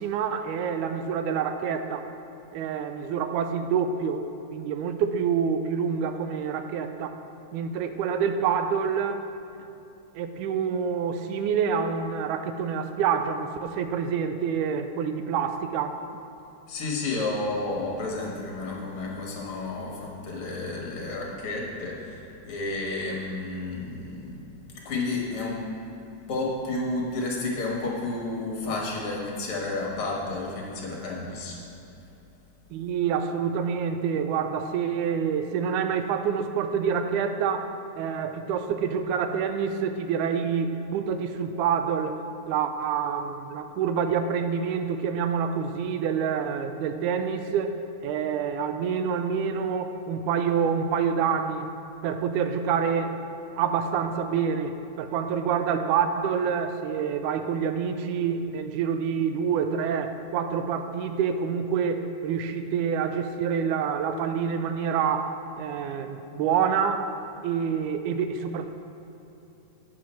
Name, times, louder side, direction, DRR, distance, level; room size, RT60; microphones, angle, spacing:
voice 1, 0.0-2.1 2.5-7.2 7.5-9.2 10.2-16.0 32.7-42.2 42.5-47.8 48.0-51.7 52.0-53.2 53.6-67.1 67.4-68.7, right 7 dB, 90° right, 8 dB, 2.1 m, -27 dB
voice 2, 16.7-24.4 24.7-25.6 26.3-31.6, left 2 dB, 50° left, -2 dB, 2.2 m, -31 dB
9.4 x 7.7 x 4.5 m, 2.8 s
omnidirectional pair, 3.5 m